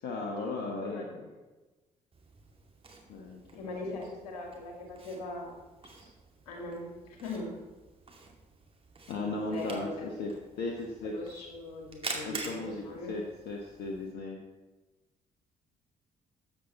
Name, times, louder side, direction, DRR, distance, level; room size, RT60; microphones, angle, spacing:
voice 1, 0.0-1.2 3.1-3.7 5.9-6.1 9.1-10.3 10.6-11.1 12.2-14.4, left 3 dB, 55° left, 1 dB, 1.2 m, -36 dB
Camera, 2.1-14.1, right 3 dB, 30° right, 2.3 m, -47 dB
voice 2, 3.5-5.5 6.5-7.5 9.2-10.1 11.0-13.1, left 2 dB, 75° left, 1 dB, 2.1 m, -40 dB
13.5 x 8.1 x 4.2 m, 1.2 s
figure-of-eight pair, 45°, 20 cm